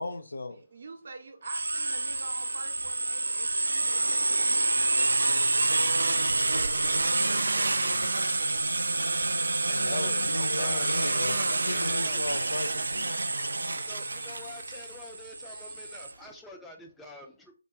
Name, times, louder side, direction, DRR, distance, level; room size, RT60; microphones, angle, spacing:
voice 1, 0.0-0.6 9.6-13.1, left 3 dB, 75° left, 0.6 m, -36 dB
voice 2, 0.7-8.4 13.4-14.7, right 3 dB, 60° right, 0.7 m, -47 dB
sound 1, 1.4-16.1, right 3 dB, 80° right, 0.3 m, -28 dB
voice 3, 9.7-12.2 13.7-17.5, left 1 dB, 5° left, 0.5 m, -47 dB
3.6 x 2.2 x 3.6 m
figure-of-eight pair, 150°, 0 cm